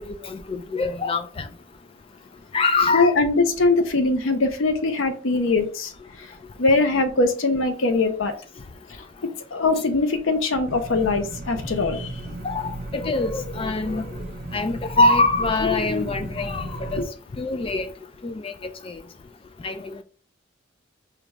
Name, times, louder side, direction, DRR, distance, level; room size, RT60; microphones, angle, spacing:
voice 1, 0.2-1.5 2.5-3.1 12.4-14.1 14.5-17.1 17.4-17.9 18.2-18.5 18.8-19.0 19.6-20.0, left 3 dB, 30° left, 0.3 m, -24 dB
voice 2, 2.9-5.9 6.2-6.3 6.6-8.3 9.5-12.2 17.0-17.1, left 3 dB, 85° left, 0.6 m, -21 dB
sound 1, 10.7-17.0, right 2 dB, 50° right, 0.4 m, -35 dB
4.9 x 2.3 x 3.1 m
head